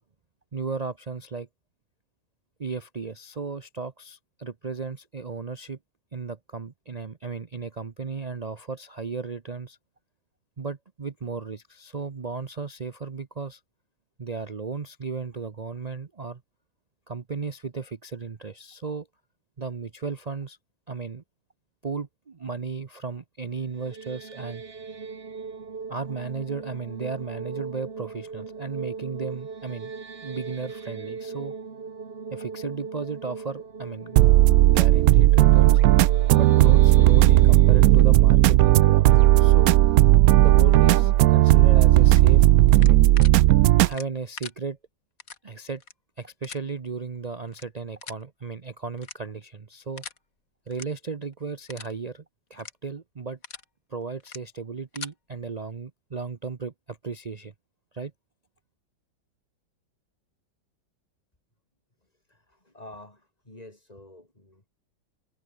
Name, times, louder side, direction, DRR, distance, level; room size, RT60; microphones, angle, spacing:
voice 1, 0.5-1.5 2.6-5.8 6.1-9.8 10.6-13.6 14.2-16.4 17.1-19.1 19.6-20.6 20.9-21.2 21.8-24.6 25.9-29.9 30.2-31.5 32.3-34.3 34.6-35.8 36.3-39.8 40.4-42.5 42.8-43.0 43.8-44.8 45.4-45.8 46.2-50.0 50.7-52.2 52.5-53.4 53.9-57.5 57.9-58.1, right 5 dB, 60° right, 0.4 m, -35 dB
sound 1, 23.6-40.8, right 5 dB, 35° right, 1.7 m, -39 dB
sound 2, 34.2-43.9, right 15 dB, 85° right, 0.7 m, -16 dB
sound 3, 42.7-43.3 43.9-44.5 45.2-45.4 45.8-45.9 46.4-46.6 47.5-47.6 48.0-48.2 49.0-49.4 50.0-50.2 50.7-50.8 51.2-51.3 51.7-51.9 52.5-52.7 53.2-53.6 54.2-54.4 54.8-55.1, left 6 dB, 45° left, 2.1 m, -40 dB
voice 2, 62.0-64.7, left 1 dB, 20° left, 4.5 m, -48 dB
omnidirectional pair, 2.1 m